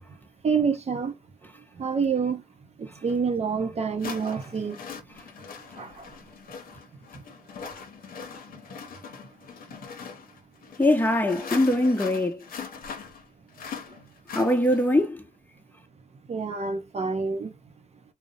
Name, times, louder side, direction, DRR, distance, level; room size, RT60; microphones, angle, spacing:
voice 1, 0.4-1.1 1.8-2.4 2.8-4.8 5.8-6.1 16.3-17.5, right 5 dB, 45° right, 0.5 m, -27 dB
sound 1, 3.1-3.2 4.0-15.1, left 6 dB, 70° left, 0.7 m, -41 dB
voice 2, 10.8-12.4 14.3-15.2, left 1 dB, 10° left, 0.7 m, -22 dB
2.5 x 2.0 x 2.7 m
supercardioid pair, 50°, 15 cm